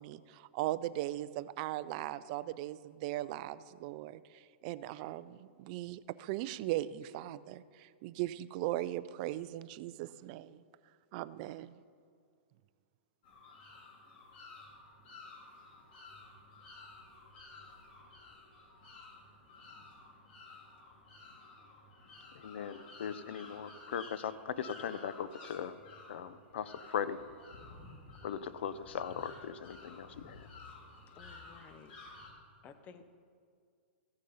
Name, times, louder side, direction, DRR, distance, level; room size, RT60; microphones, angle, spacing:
voice 1, 0.0-10.6 11.1-11.8, right 15 dB, 40° right, 15 dB, 0.4 m, -39 dB
sound 1, 13.2-32.3, left 3 dB, 55° left, 2.8 m, -53 dB
voice 2, 22.4-25.7 26.1-27.2 28.2-30.5, left 8 dB, 70° left, 14 dB, 0.6 m, -39 dB
voice 3, 31.2-32.2 32.6-33.0, left 6 dB, 25° left, 10 dB, 0.7 m, -55 dB
15.0 x 6.5 x 5.5 m, 2.2 s
hypercardioid pair, 145°, 6 cm